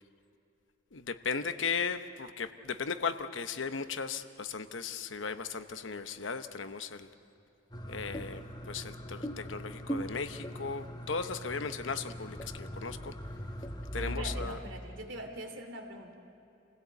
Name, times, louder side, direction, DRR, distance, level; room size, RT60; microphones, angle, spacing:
voice 1, 0.9-7.1 7.9-13.1 13.9-14.6, left 5 dB, 90° left, 10 dB, 0.9 m, -36 dB
sound 1, 7.7-14.5, equal, 20° left, 1.2 m, -40 dB
voice 2, 14.0-16.1, right 1 dB, 85° right, 4 dB, 2.7 m, -43 dB
28.0 x 16.5 x 8.3 m, 2.8 s
head